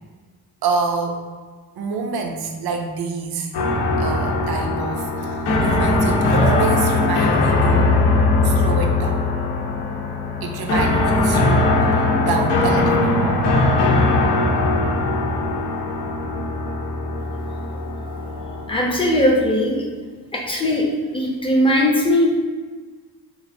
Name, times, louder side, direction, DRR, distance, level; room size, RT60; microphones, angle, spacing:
voice 1, 0.6-1.2 1.8-3.5 4.0-8.0 8.4-9.2 10.4-11.9 12.2-13.2, right 4 dB, 70° right, 2 dB, 0.6 m, -27 dB
sound 1, 3.5-19.5, left 2 dB, 85° left, 0.6 m, -20 dB
voice 2, 18.5-19.8 20.3-20.9 21.1-22.4, left 1 dB, 15° left, -1 dB, 0.6 m, -19 dB
3.4 x 3.1 x 2.6 m, 1.4 s
wide cardioid pair, 120°, 39 cm